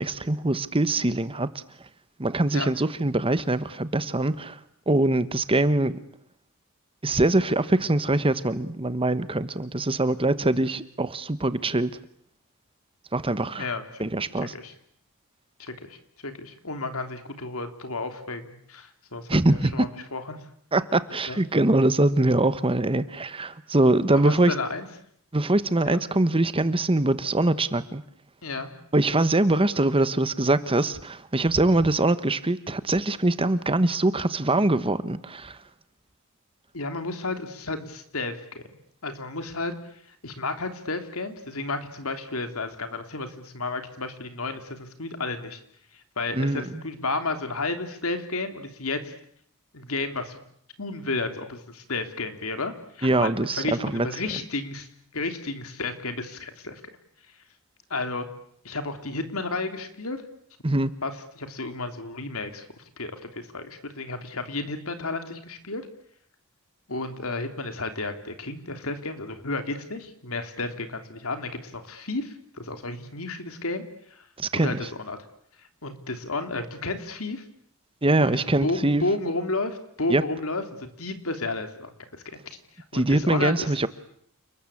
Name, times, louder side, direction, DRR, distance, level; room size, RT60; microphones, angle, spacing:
voice 1, 0.0-1.5 2.2-4.6 4.9-6.0 7.0-11.9 13.1-13.7 14.0-14.5 19.3-19.7 20.7-24.5 25.3-28.0 28.9-35.6 46.3-46.8 53.0-54.1 60.6-60.9 74.4-74.8 78.0-79.0 80.1-80.2 82.9-83.9, right 2 dB, 25° right, 13 dB, 1.2 m, -23 dB
voice 2, 13.6-14.0 14.4-14.7 15.6-20.4 21.3-21.4 24.1-24.9 25.9-26.0 28.4-28.7 36.7-38.6 39.0-39.7 40.2-45.6 45.9-49.1 49.7-50.4 50.8-54.9 55.1-56.8 57.9-58.3 58.6-60.2 61.0-65.9 66.9-73.8 74.1-74.2 74.5-75.2 75.8-77.4 78.2-82.4 82.9-83.8, left 3 dB, 70° left, 7 dB, 3.2 m, -32 dB
29.5 x 20.5 x 8.6 m, 0.67 s
head